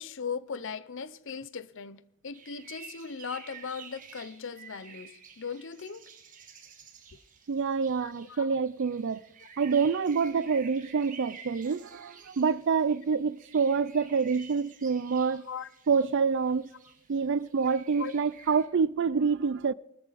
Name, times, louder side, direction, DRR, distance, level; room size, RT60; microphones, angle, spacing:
voice 1, 0.0-6.0 8.0-8.6 9.4-9.5 15.3-15.7 18.0-18.1, left 6 dB, 65° left, 0.7 m, -39 dB
sound 1, 2.3-18.7, right 6 dB, 40° right, 2.1 m, -51 dB
voice 2, 7.5-9.2 9.6-15.4 15.9-16.7 17.1-19.7, right 5 dB, 60° right, 0.5 m, -27 dB
19.5 x 13.5 x 4.1 m
head